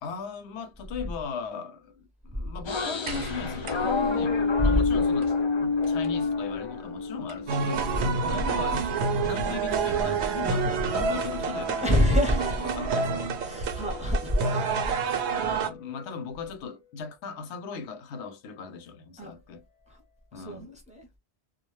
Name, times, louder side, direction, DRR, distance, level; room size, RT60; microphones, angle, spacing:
voice 1, 0.0-4.3 4.6-7.9 8.2-13.3 15.5-19.6 20.3-20.7, left 5 dB, 90° left, 0.9 m, -38 dB
sound 1, 2.6-8.6 9.0-13.2 13.5-16.1, left 4 dB, 45° left, 0.4 m, -31 dB
sound 2, 3.1-8.7 9.7-9.8, right 2 dB, 50° right, 0.4 m, -44 dB
voice 2, 4.1-4.8 7.9-8.3 11.8-12.6 13.4-14.7 19.2-19.3 19.9-20.0 20.3-21.1, left 1 dB, 10° right, 0.6 m, -27 dB
sound 3, 7.5-15.7, right 4 dB, 80° right, 0.9 m, -28 dB
2.3 x 2.1 x 3.0 m
omnidirectional pair, 1.1 m